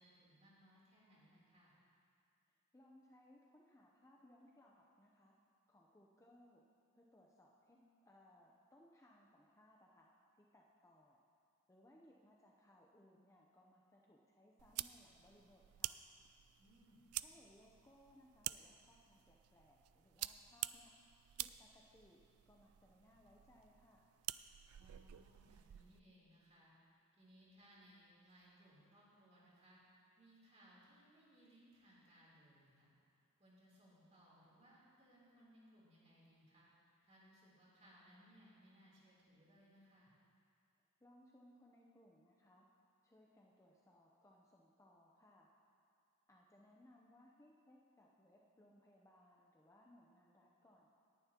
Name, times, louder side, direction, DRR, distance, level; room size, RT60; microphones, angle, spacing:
voice 1, 0.0-1.8 16.6-17.1 24.8-26.7 27.2-29.8 30.2-32.9 33.4-36.7 37.0-40.1, equal, 30° right, -6 dB, 3.4 m, -66 dB
voice 2, 2.7-5.3 5.7-6.6 6.9-11.2 11.7-16.0 17.2-20.9 21.4-22.2 22.5-24.1 41.0-42.7 43.0-45.5 46.3-50.9, left 1 dB, 15° left, -2 dB, 0.7 m, -67 dB
sound 1, 14.6-26.0, right 15 dB, 70° right, 0.3 m, -49 dB
18.5 x 10.5 x 2.9 m, 2.4 s
head